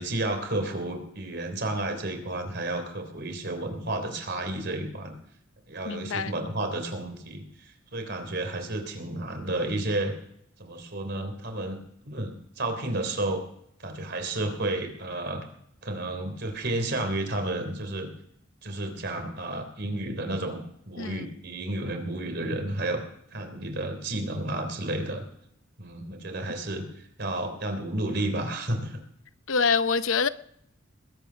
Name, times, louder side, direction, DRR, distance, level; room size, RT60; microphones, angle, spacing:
voice 1, 0.0-5.2 5.7-10.1 10.6-11.8 12.0-13.4 13.8-15.4 15.8-18.1 18.6-20.6 20.9-23.0 23.3-25.2 25.8-29.0, right 1 dB, 55° right, 3.4 m, -31 dB
voice 2, 5.8-6.3 21.0-21.3 29.5-30.3, left 5 dB, 75° left, 0.7 m, -25 dB
20.5 x 9.1 x 6.3 m
head